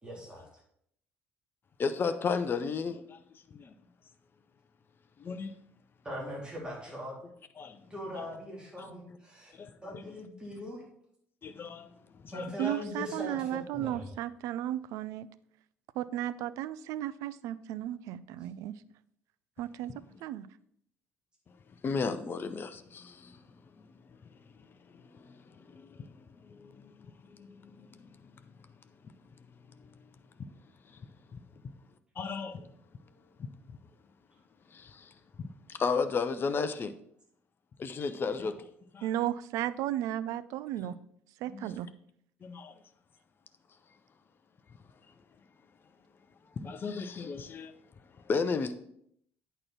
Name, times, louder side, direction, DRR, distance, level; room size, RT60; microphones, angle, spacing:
voice 1, 0.0-0.5 6.0-7.1 7.9-9.5 9.8-10.8 12.3-13.4 13.7-14.1, left 1 dB, 15° right, -3 dB, 3.1 m, -40 dB
voice 2, 1.8-3.2 3.5-3.7 5.2-5.5 7.6-7.8 8.2-8.3 9.1-9.2 9.6-10.2 11.4-11.9 12.2-12.7 21.8-23.4 25.1-26.1 26.5-26.9 27.3-28.1 31.3-31.4 32.2-32.6 34.7-35.1 35.7-36.9 37.8-38.6 38.9-39.0 40.8-40.9 41.5-41.7 42.4-42.7 46.6-47.8 48.3-48.7, left 5 dB, 35° left, 10 dB, 0.7 m, -34 dB
voice 3, 12.6-15.3 16.0-18.8 19.6-19.9 20.2-20.5 39.0-41.0 41.4-41.9, right 12 dB, 55° right, 16 dB, 0.4 m, -34 dB
8.8 x 4.5 x 5.9 m, 0.70 s
figure-of-eight pair, 50°, 7 cm